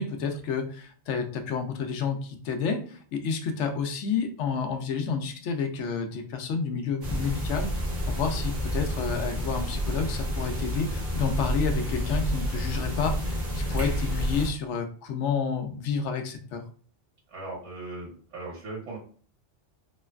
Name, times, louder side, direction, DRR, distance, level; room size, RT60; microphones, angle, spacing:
voice 1, 0.0-7.7 8.1-16.6, left 5 dB, 80° left, 6 dB, 0.9 m, -30 dB
sound 1, 7.0-14.5, equal, 45° right, 1.0 m, -29 dB
voice 2, 17.3-19.0, right 2 dB, 65° right, -4 dB, 1.6 m, -38 dB
3.1 x 2.1 x 2.3 m, 0.43 s
omnidirectional pair, 1.2 m